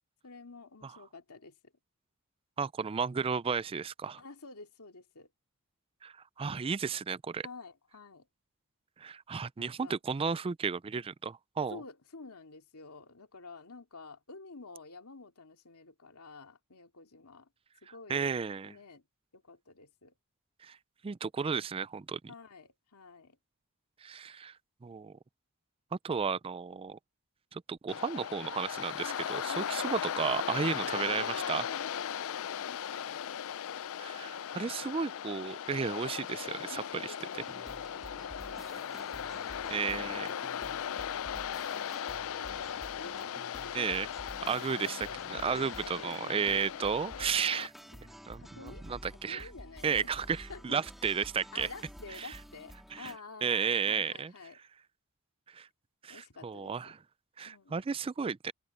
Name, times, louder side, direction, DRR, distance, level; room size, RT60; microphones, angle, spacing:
voice 1, 0.2-1.5 4.2-5.3 7.4-8.3 9.6-10.0 11.7-17.5 17.8-18.4 18.6-19.0 19.3-20.1 22.3-23.4 29.0-30.2 30.8-33.2 34.6-35.0 36.7-40.2 41.6-44.0 44.8-47.2 47.9-50.2 50.5-50.8 51.5-54.6 56.1-56.8 57.5-57.8, left 4 dB, 85° left, 2.5 m, -49 dB
voice 2, 2.6-4.2 6.0-6.1 6.4-7.5 9.0-11.8 18.1-18.7 20.6-20.8 21.0-22.3 24.0-24.5 24.8-25.2 26.0-27.0 27.5-31.6 34.0-37.1 39.7-40.3 43.7-44.1 44.5-47.7 48.3-48.4 48.9-49.5 49.8-51.7 52.1-52.3 52.9-53.1 53.4-54.3 55.5-55.7 56.0-57.0 57.4-58.5, right 6 dB, 25° right, 0.4 m, -33 dB
Waves surf, 27.9-47.7, left 8 dB, 65° left, 0.4 m, -38 dB
sound 1, 37.3-53.2, equal, ahead, 2.5 m, -50 dB
head